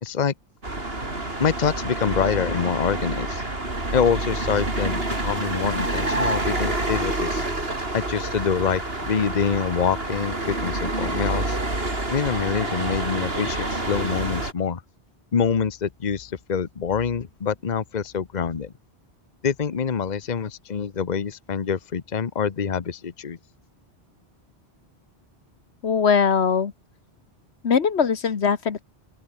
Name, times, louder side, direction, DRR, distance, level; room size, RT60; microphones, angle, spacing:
voice 1, 0.0-0.3 1.4-3.4 3.9-7.4 7.9-11.6 12.1-14.8 15.3-18.7 19.4-23.4, left 6 dB, 45° left, 1.1 m, -25 dB
sound 1, 0.6-14.5, right 2 dB, 65° right, 4.9 m, -28 dB
voice 2, 25.8-26.7 27.6-28.8, left 6 dB, 85° left, 1.6 m, -21 dB
open air
omnidirectional pair, 1.1 m